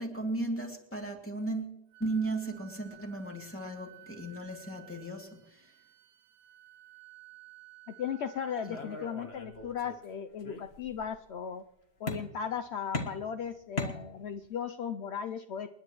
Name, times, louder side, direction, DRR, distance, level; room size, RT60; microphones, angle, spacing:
voice 1, 0.0-5.7 8.6-8.8, right 2 dB, 5° left, 1 dB, 2.5 m, -36 dB
Wind instrument woodwind instrument, 1.9-9.7, right 13 dB, 65° right, 1.4 m, -56 dB
voice 2, 8.0-11.6 12.0-15.7, left 7 dB, 65° left, 8 dB, 0.6 m, -36 dB
sound 1, 8.7-10.1 10.4-11.1 12.1-12.6 12.9-14.5, left 2 dB, 40° left, 1.7 m, -39 dB
28.5 x 10.5 x 3.1 m, 0.85 s
omnidirectional pair, 1.8 m